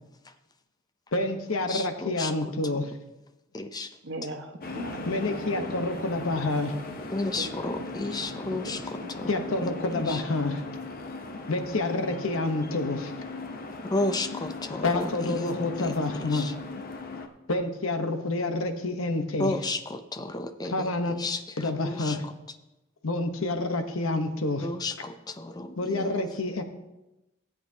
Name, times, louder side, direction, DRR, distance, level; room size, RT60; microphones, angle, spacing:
voice 1, 1.1-2.9 5.1-6.7 9.3-10.6 11.5-13.1 14.8-16.5 17.5-19.5 20.7-21.1 21.6-22.2 23.0-24.6 25.8-26.6, left 2 dB, 80° left, 6 dB, 1.0 m, -28 dB
voice 2, 1.7-2.3 3.5-4.0 7.1-10.2 13.9-15.9 16.2-16.5 19.4-22.3 24.6-26.2, left 2 dB, 20° left, 9 dB, 0.6 m, -33 dB
voice 3, 4.0-5.8 7.3-7.9 8.2-9.6 11.9-12.2, right 1 dB, 60° right, 4 dB, 1.3 m, -40 dB
sound 1, 4.6-17.3, left 3 dB, 45° left, 0.8 m, -38 dB
16.0 x 8.6 x 2.8 m, 0.98 s
head